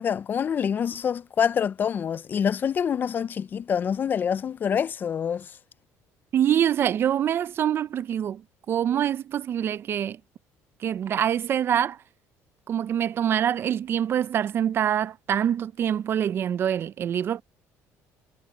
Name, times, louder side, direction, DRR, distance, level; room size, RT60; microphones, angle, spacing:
voice 1, 0.0-5.6, left 7 dB, 35° left, 0.4 m, -26 dB
voice 2, 6.3-8.4 8.7-10.2 10.8-12.0 12.7-17.4, right 9 dB, 40° right, 0.4 m, -25 dB
cardioid pair, 140°, 6 cm